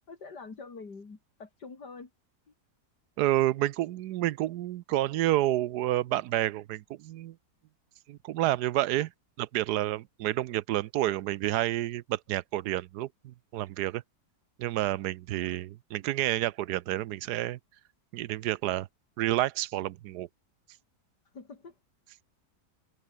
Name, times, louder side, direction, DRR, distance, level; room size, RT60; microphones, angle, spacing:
voice 1, 0.1-2.1 21.3-21.7, left 4 dB, 85° left, 3.9 m, -45 dB
voice 2, 3.2-7.3 8.1-9.1 9.4-14.0 14.6-17.6 18.1-18.9 19.2-20.3, right 14 dB, 75° right, 1.2 m, -29 dB
omnidirectional pair, 1.8 m